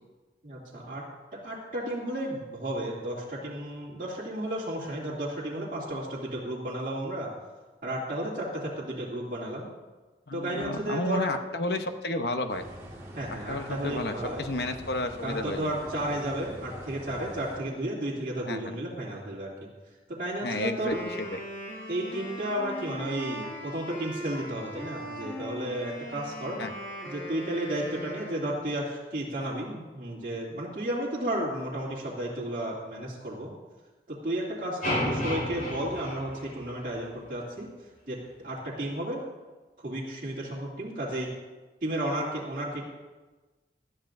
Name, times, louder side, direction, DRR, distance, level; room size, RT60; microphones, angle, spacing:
voice 1, 0.4-1.0 1.4-7.3 7.8-9.7 10.3-11.3 13.1-14.5 15.2-19.7 20.1-21.0 21.9-26.6 27.0-33.5 34.1-37.7 38.1-38.2 38.4-39.2 39.8-41.3 41.8-42.8, right 1 dB, 50° right, -7 dB, 2.7 m, -33 dB
voice 2, 10.3-12.6 13.5-15.7 18.5-18.8 20.4-20.9 21.3-21.4 26.6-26.7, left 1 dB, 70° left, 7 dB, 0.9 m, -31 dB
sound 1, 12.5-17.6, equal, 15° right, 1.8 m, -44 dB
Wind instrument woodwind instrument, 20.6-28.8, equal, 15° left, 3.6 m, -40 dB
sound 2, 34.8-37.1, left 1 dB, 50° left, 4.4 m, -32 dB
19.0 x 13.0 x 2.6 m, 1.2 s
head